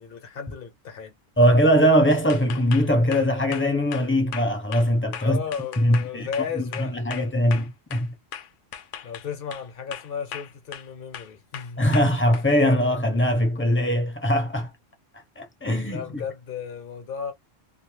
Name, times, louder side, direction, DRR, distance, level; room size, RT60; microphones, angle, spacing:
voice 1, 0.0-1.2 5.2-7.0 9.0-11.8 15.9-17.3, left 7 dB, 50° left, 1.1 m, -34 dB
voice 2, 1.4-5.4 5.8-6.3 6.5-8.1 11.8-14.7 15.4-16.0, equal, 10° left, 0.8 m, -21 dB
sound 1, 2.3-8.1 8.3-9.7 9.9-10.9 11.1-12.5, left 9 dB, 75° left, 1.0 m, -38 dB
2.6 x 2.6 x 3.2 m
omnidirectional pair, 1.3 m